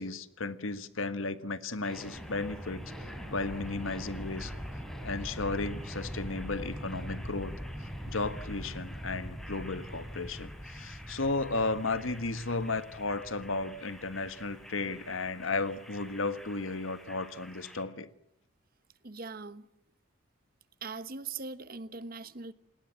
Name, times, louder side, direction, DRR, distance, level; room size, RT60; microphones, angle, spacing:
voice 1, 0.0-2.8 3.3-4.5 5.0-7.5 8.1-18.1, left 3 dB, 80° left, 1.5 m, -34 dB
sound 1, 1.8-17.8, equal, ahead, 3.9 m, -43 dB
voice 2, 19.0-19.7 20.8-22.5, right 4 dB, 45° right, 1.1 m, -41 dB
28.5 x 19.0 x 7.7 m
head